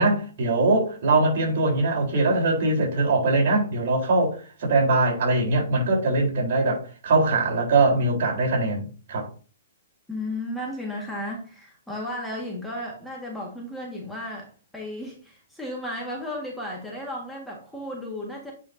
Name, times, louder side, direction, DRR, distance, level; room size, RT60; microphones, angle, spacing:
voice 1, 0.0-9.3, right 2 dB, 55° right, 4.0 m, -22 dB
voice 2, 10.1-18.5, left 1 dB, ahead, 1.7 m, -34 dB
8.8 x 5.0 x 2.7 m
hypercardioid pair, 140°, 0 cm